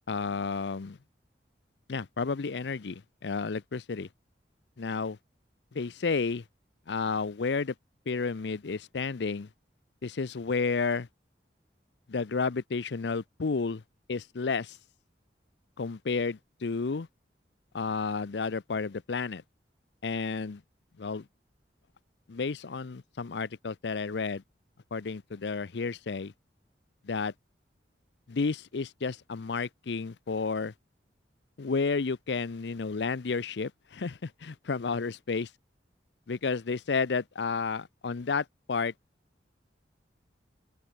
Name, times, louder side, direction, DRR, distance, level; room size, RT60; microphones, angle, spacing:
voice 1, 0.1-1.0 1.9-4.1 4.8-5.2 5.7-6.4 6.9-7.7 8.1-9.5 10.0-11.1 12.1-13.8 14.1-14.8 15.8-17.1 17.7-19.4 20.0-20.6 21.0-21.3 22.3-24.4 24.9-26.3 27.0-27.3 28.3-30.7 31.6-35.5 36.3-38.9, left 4 dB, 75° left, 0.6 m, -31 dB
open air
head